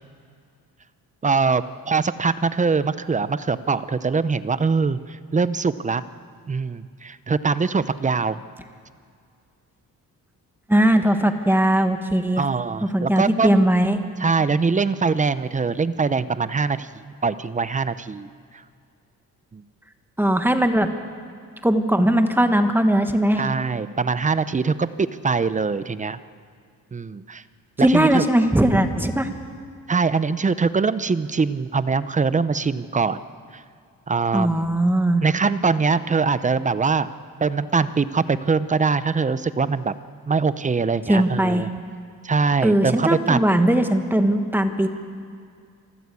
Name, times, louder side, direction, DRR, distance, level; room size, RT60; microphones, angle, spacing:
voice 1, 1.2-5.0 5.3-6.0 6.5-8.4 12.4-13.7 14.2-16.9 17.2-18.3 19.5-19.6 23.4-26.2 26.9-27.4 27.8-28.2 29.9-33.2 33.5-33.6 34.1-34.8 35.2-37.1 37.4-39.9 40.3-41.7 42.2-43.4, right 4 dB, 20° right, 14 dB, 0.6 m, -22 dB
voice 2, 10.7-12.4 12.8-14.0 20.2-20.9 21.6-23.4 27.8-29.3 34.3-35.2 41.1-41.7 42.6-44.9, right 1 dB, 5° right, 7 dB, 1.4 m, -19 dB
26.0 x 14.0 x 8.4 m, 2.3 s
cardioid pair, 120°, 34 cm